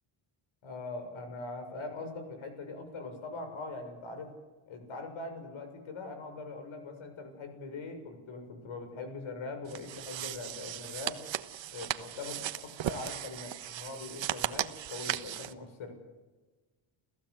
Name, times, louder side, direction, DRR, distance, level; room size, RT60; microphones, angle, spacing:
voice 1, 0.6-4.3 4.7-11.2 11.7-16.0, left 3 dB, 70° left, 7 dB, 6.9 m, -42 dB
sound 1, 9.7-15.5, right 12 dB, 65° right, 1.3 m, -37 dB
30.0 x 15.5 x 8.2 m, 1.3 s
cardioid pair, 110°, 50 cm